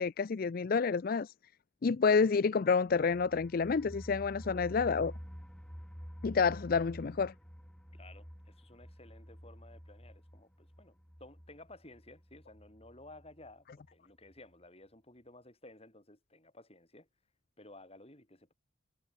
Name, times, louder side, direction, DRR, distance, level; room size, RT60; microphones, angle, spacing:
voice 1, 0.0-1.3 1.8-5.1 6.2-7.3, left 5 dB, 50° left, 0.4 m, -29 dB
sound 1, 2.9-13.5 13.8-13.9 14.3-14.4, equal, 5° left, 7.2 m, -49 dB
voice 2, 7.9-17.1 17.6-18.5, left 2 dB, 30° left, 7.6 m, -55 dB
head